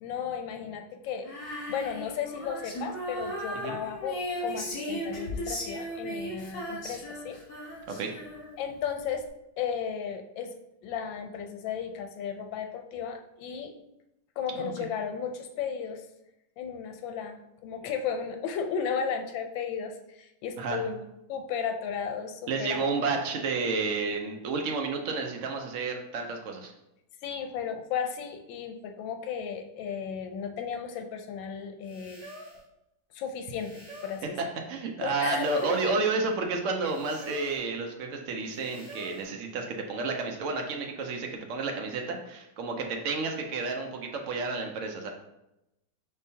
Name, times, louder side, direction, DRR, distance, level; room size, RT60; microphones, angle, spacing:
voice 1, 0.0-1.3 1.7-7.4 8.6-9.2 9.6-10.5 10.8-13.7 14.4-16.0 16.6-21.0 21.3-22.8 27.2-32.2 33.1-34.4 35.0-35.9, left 7 dB, 90° left, 6 dB, 1.3 m, -34 dB
Female singing, 1.2-8.7, equal, 70° left, 1.9 m, -36 dB
voice 2, 22.5-26.7 34.7-45.1, right 4 dB, 75° right, 3 dB, 0.7 m, -31 dB
sound 1, 30.9-31.0 31.8-32.7 33.5-34.3 35.2-36.0 36.8-37.7 38.5-39.3, right 1 dB, 15° left, 0.7 m, -47 dB
5.0 x 3.6 x 2.7 m, 0.88 s
omnidirectional pair, 2.0 m